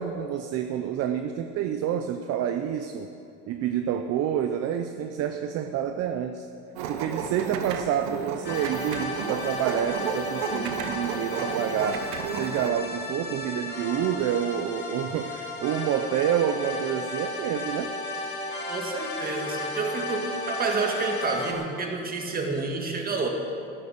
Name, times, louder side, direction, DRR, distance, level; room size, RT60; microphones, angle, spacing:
voice 1, 0.0-3.1 3.5-6.5 6.9-12.1 12.4-17.9, right 9 dB, 50° right, 7 dB, 0.7 m, -28 dB
sound 1, 6.8-12.7, right 6 dB, 85° right, 1.1 m, -33 dB
sound 2, 8.4-21.5, left 2 dB, 35° left, 2.3 m, -34 dB
voice 2, 18.7-23.3, right 3 dB, 30° right, 3 dB, 2.0 m, -29 dB
11.0 x 11.0 x 6.6 m, 2.7 s
supercardioid pair, 110°, 31 cm